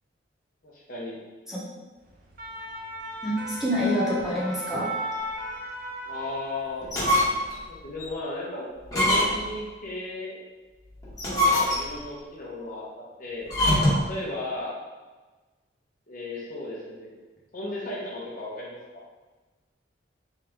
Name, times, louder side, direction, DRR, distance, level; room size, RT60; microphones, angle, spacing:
voice 1, 0.6-1.2 6.1-6.9 7.7-8.7 8.9-10.4 11.3-14.7 16.1-17.1 17.5-19.0, left 2 dB, 45° left, -4 dB, 0.7 m, -35 dB
sound 1, 2.1-6.9 7.2-7.5, right 1 dB, 50° right, 0.6 m, -36 dB
voice 2, 3.2-4.9, equal, 5° right, -8 dB, 0.9 m, -26 dB
sound 2, 6.8-7.5 8.0-8.1 8.9-9.6 11.0-12.1 13.5-14.1, left 1 dB, 20° left, 1.0 m, -23 dB
3.6 x 2.8 x 3.4 m, 1.2 s
head